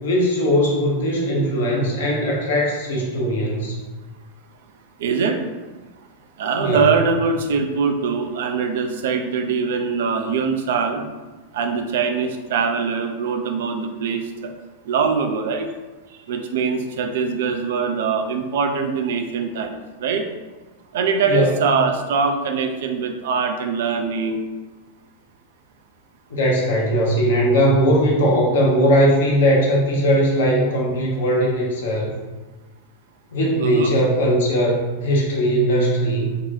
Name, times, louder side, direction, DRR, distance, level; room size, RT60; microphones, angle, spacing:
voice 1, 0.0-3.8 6.6-7.0 21.3-21.7 26.3-32.2 33.3-36.4, equal, 60° left, -2 dB, 0.7 m, -19 dB
voice 2, 5.0-5.4 6.4-11.0 11.5-14.5 14.9-15.7 16.1-20.3 20.9-24.5 33.6-33.9, right 5 dB, 55° right, 6 dB, 0.4 m, -22 dB
3.9 x 2.3 x 2.6 m, 1.2 s
figure-of-eight pair, 90°, 0 cm